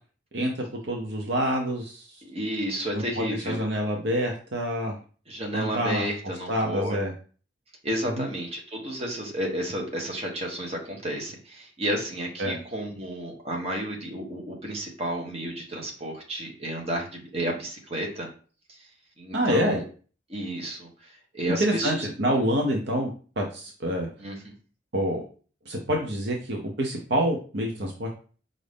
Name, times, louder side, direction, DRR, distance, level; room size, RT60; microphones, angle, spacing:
voice 1, 0.3-2.2 2.9-5.0 5.5-6.0 6.5-7.1 8.2-8.3 12.4-12.5 19.3-19.8 21.6-23.1 23.4-24.1 24.9-25.2 25.7-28.1, equal, 60° right, 1 dB, 0.8 m, -27 dB
voice 2, 2.2-3.6 5.3-7.0 7.8-18.3 18.7-18.9 19.2-19.8 20.3-22.0 24.2-24.5, right 1 dB, 30° right, -1 dB, 1.1 m, -32 dB
5.1 x 2.6 x 3.4 m, 0.39 s
head